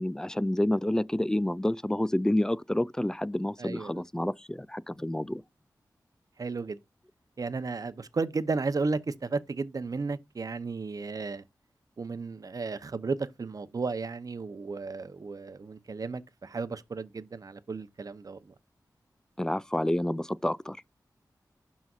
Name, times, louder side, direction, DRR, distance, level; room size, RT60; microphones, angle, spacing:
voice 1, 0.0-5.4 19.4-20.8, left 1 dB, 10° left, 0.3 m, -29 dB
voice 2, 3.6-4.0 6.4-6.8 7.4-11.4 12.0-18.4, right 4 dB, 55° right, 0.7 m, -34 dB
12.0 x 4.1 x 2.4 m
wide cardioid pair, 65°, 7 cm